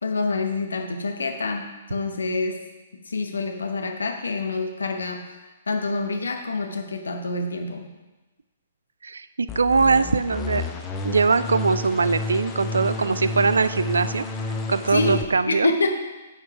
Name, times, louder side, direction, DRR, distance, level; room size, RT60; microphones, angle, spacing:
voice 1, 0.0-2.6 3.0-5.4 5.7-7.9 14.9-15.2 15.4-15.9, left 3 dB, 70° left, 5 dB, 1.0 m, -27 dB
voice 2, 9.0-10.6 11.0-14.3 14.7-15.7, right 4 dB, 70° right, 13 dB, 0.3 m, -21 dB
sound 1, 9.5-15.3, left 3 dB, 20° left, 0.8 m, -30 dB
9.0 x 4.6 x 4.7 m, 1.1 s
figure-of-eight pair, 120°, 0 cm